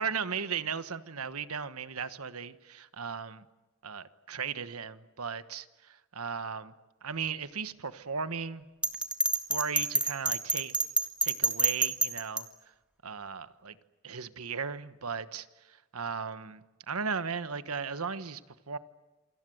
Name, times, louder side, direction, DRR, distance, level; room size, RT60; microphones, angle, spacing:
voice 1, 0.0-3.4 3.8-6.7 7.0-8.6 9.5-10.7 11.2-12.5 13.0-13.8 14.0-18.4 18.7-18.8, right 6 dB, 80° right, 12 dB, 1.2 m, -36 dB
Bell, 8.8-12.4, right 2 dB, 5° right, 1.8 m, -27 dB
28.0 x 25.0 x 7.9 m, 1.2 s
head